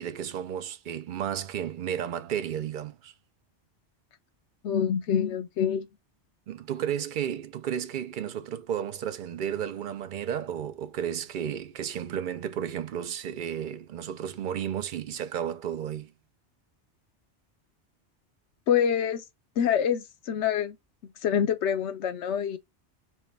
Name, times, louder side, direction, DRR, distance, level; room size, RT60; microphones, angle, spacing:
voice 1, 0.0-3.1 6.5-16.1, right 9 dB, 55° right, 0.6 m, -33 dB
voice 2, 4.6-5.9 18.7-19.2 19.6-20.8 21.2-22.6, left 8 dB, 85° left, 0.9 m, -26 dB
4.5 x 2.2 x 3.3 m
omnidirectional pair, 1.2 m